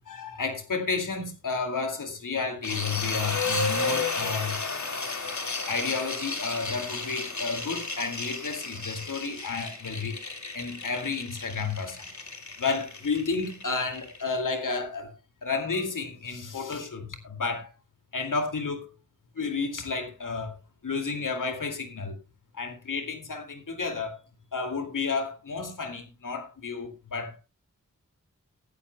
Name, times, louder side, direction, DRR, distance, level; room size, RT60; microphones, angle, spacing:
voice 1, 0.1-4.6 5.7-10.2 10.5-12.1 12.6-15.1 15.4-17.7 18.1-18.9 19.3-20.6 20.8-22.2 22.5-24.2 24.5-27.4, left 4 dB, 85° left, 2.3 m, -31 dB
sound 1, 2.6-14.6, left 3 dB, 65° left, 3.1 m, -33 dB
16.0 x 13.5 x 2.2 m
wide cardioid pair, 75°, 31 cm